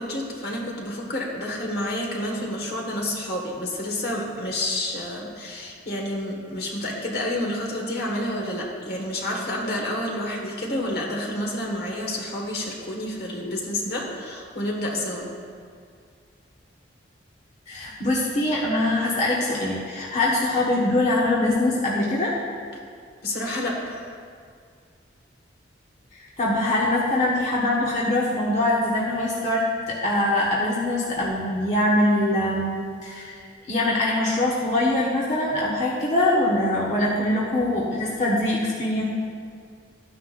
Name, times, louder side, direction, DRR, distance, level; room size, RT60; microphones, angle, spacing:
voice 1, 0.0-15.3 23.2-24.0, left 1 dB, 55° left, -1 dB, 1.6 m, -29 dB
voice 2, 17.7-22.3 26.4-33.4 33.7-39.0, left 1 dB, 40° left, -6 dB, 1.3 m, -23 dB
13.5 x 9.7 x 2.5 m, 2.2 s
head